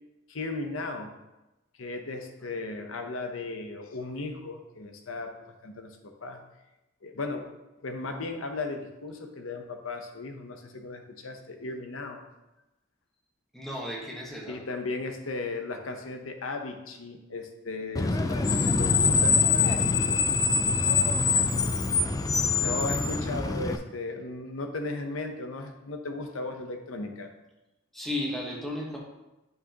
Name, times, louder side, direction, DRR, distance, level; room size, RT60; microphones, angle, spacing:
voice 1, 0.3-1.1 1.8-5.3 5.6-6.4 7.0-7.4 7.8-12.2 14.5-19.9 22.6-27.3, left 3 dB, 90° left, 5 dB, 0.8 m, -36 dB
voice 2, 13.5-14.6 27.9-29.0, left 1 dB, ahead, -3 dB, 1.2 m, -34 dB
Screech, 18.0-23.8, left 4 dB, 20° left, 0.3 m, -24 dB
8.2 x 5.4 x 2.9 m, 0.99 s
head